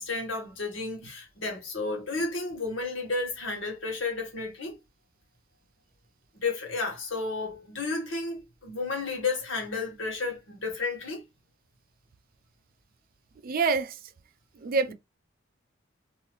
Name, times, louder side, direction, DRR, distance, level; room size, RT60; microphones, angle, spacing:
voice 1, 0.0-4.8 6.4-11.2 14.9-15.0, left 3 dB, 70° left, 1.4 m, -32 dB
voice 2, 13.4-13.9 14.6-14.9, right 4 dB, 50° right, 0.4 m, -26 dB
2.7 x 2.7 x 3.1 m
head